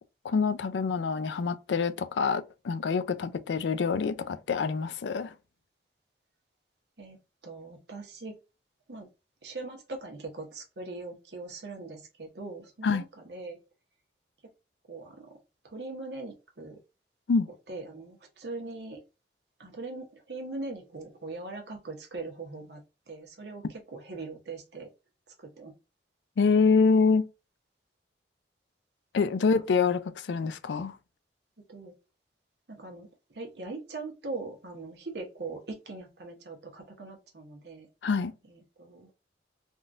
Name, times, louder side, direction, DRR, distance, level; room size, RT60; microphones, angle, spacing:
voice 1, 0.2-5.3 12.8-13.0 17.3-17.5 26.4-27.3 29.1-31.0 38.0-38.3, left 5 dB, 85° left, 0.4 m, -26 dB
voice 2, 7.4-8.3 8.9-9.1 9.4-13.6 14.9-15.4 15.6-16.8 17.7-19.0 19.6-22.8 23.1-24.9 25.4-25.7 29.4-29.6 31.7-31.9 32.7-33.1 33.3-37.9 38.5-39.1, right 3 dB, 70° right, 1.0 m, -41 dB
3.6 x 2.4 x 2.6 m
head